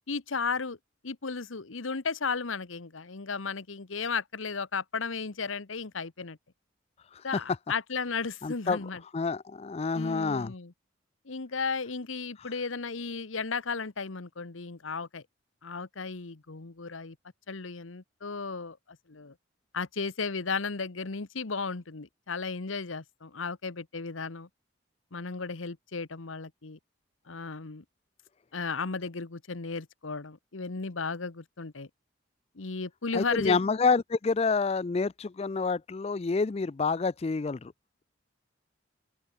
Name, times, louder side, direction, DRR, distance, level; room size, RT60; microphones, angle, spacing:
voice 1, 0.1-0.8 1.0-6.4 7.2-9.0 9.9-10.7 11.2-15.2 15.6-17.2 17.5-19.3 19.7-24.5 25.1-26.8 27.3-27.8 28.5-31.9 32.5-33.6, left 4 dB, 85° left, 1.2 m, -34 dB
voice 2, 8.4-8.8 9.1-10.5 33.1-37.7, left 4 dB, 30° left, 0.4 m, -28 dB
open air
head